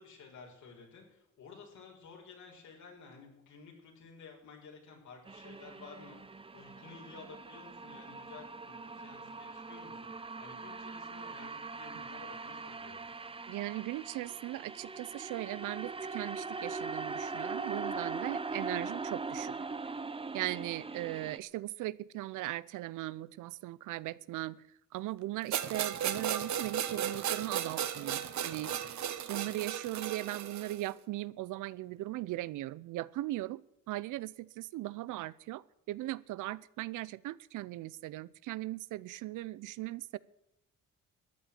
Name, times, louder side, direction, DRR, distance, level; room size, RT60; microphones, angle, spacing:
voice 1, 0.0-10.1 10.4-13.1 28.6-29.1, left 5 dB, 70° left, 0 dB, 6.0 m, -53 dB
sound 1, 5.3-21.4, right 4 dB, 20° right, 0.8 m, -41 dB
voice 2, 13.5-19.7 20.3-24.6 24.9-28.7 29.3-40.2, right 16 dB, 85° right, 20 dB, 0.6 m, -39 dB
sound 2, 25.5-30.9, right 10 dB, 70° right, 1.3 m, -35 dB
13.5 x 9.0 x 8.9 m, 0.85 s
cardioid pair, 90°, 30 cm